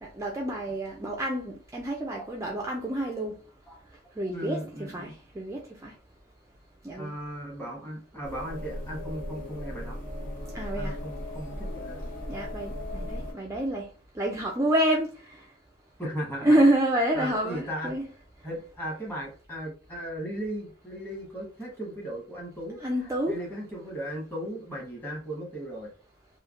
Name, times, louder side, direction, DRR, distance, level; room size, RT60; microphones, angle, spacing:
voice 1, 0.0-3.4 4.2-4.6 4.9-5.9 6.8-7.1 10.5-11.0 12.3-13.9 14.2-15.4 16.4-18.1 22.8-23.4, right 1 dB, 15° right, 0.3 m, -28 dB
voice 2, 4.2-5.1 6.9-10.0 10.7-12.1 16.0-16.6 17.1-17.9 18.4-25.9, equal, 10° left, 1.1 m, -37 dB
sound 1, 8.2-13.3, left 1 dB, 45° left, 1.1 m, -37 dB
3.2 x 2.2 x 2.4 m
head